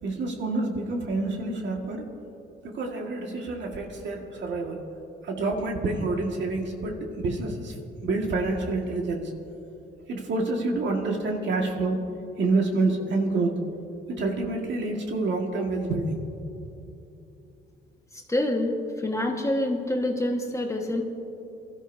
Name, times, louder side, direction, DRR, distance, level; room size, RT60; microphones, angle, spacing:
voice 1, 0.0-2.1 2.6-4.8 5.2-7.8 8.0-9.3 10.1-12.0 12.4-13.5 14.1-16.2, right 3 dB, 65° right, 1 dB, 1.9 m, -27 dB
voice 2, 18.1-21.0, left 1 dB, 15° left, 2 dB, 1.5 m, -27 dB
23.5 x 13.0 x 2.7 m, 2.9 s
cardioid pair, 90°, 20 cm